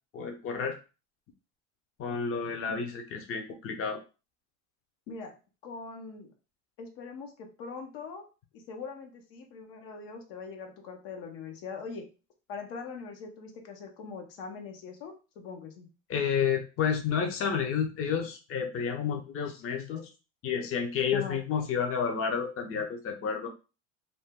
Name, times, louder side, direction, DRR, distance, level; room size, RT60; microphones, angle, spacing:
voice 1, 0.1-0.8 2.0-4.0 16.1-20.1 20.4-23.5, left 7 dB, 35° left, 3 dB, 0.7 m, -30 dB
voice 2, 5.6-6.3 6.8-8.2 8.5-12.1 12.5-15.9 21.1-21.4, left 5 dB, 70° left, 3 dB, 0.9 m, -42 dB
2.7 x 2.2 x 3.5 m, 0.32 s
supercardioid pair, 90°, 36 cm